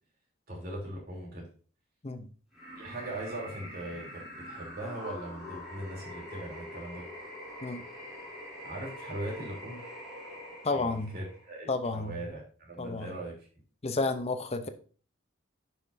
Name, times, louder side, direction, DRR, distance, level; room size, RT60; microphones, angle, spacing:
voice 1, 0.5-1.5 2.8-7.0 8.6-9.8 10.7-13.4, right 1 dB, 45° right, -2 dB, 3.2 m, -40 dB
sound 1, 2.5-11.5, left 1 dB, ahead, 3.3 m, -44 dB
voice 2, 10.6-11.2 11.7-12.2 12.8-13.1 13.8-14.7, left 3 dB, 30° left, 8 dB, 0.6 m, -31 dB
10.5 x 5.8 x 2.6 m, 0.40 s
head